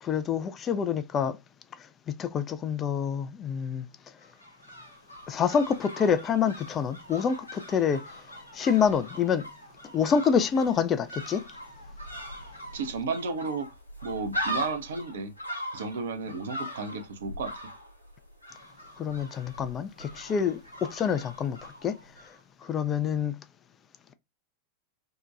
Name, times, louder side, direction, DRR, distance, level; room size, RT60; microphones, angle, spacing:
voice 1, 0.0-1.4 2.1-3.9 5.3-8.0 8.5-9.5 9.9-11.4 19.0-22.0 22.6-23.4, left 7 dB, 25° left, 0.3 m, -27 dB
sound 1, 4.2-22.4 22.6-22.7, equal, 90° left, 0.6 m, -41 dB
voice 2, 12.7-13.7 14.0-15.3 15.7-17.5, right 4 dB, 60° right, 0.5 m, -33 dB
2.7 x 2.1 x 2.3 m
figure-of-eight pair, 90°, 0 cm